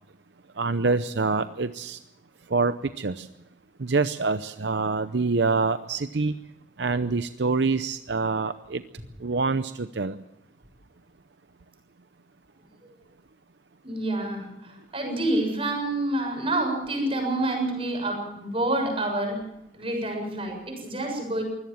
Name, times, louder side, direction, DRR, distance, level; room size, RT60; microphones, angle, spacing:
voice 1, 0.6-2.0 2.5-3.3 3.8-6.3 6.8-8.8 9.2-10.2, right 4 dB, 70° right, 11 dB, 0.7 m, -26 dB
voice 2, 13.8-19.4 19.7-21.4, right 1 dB, 30° right, 3 dB, 6.9 m, -28 dB
23.5 x 17.0 x 7.2 m, 0.84 s
head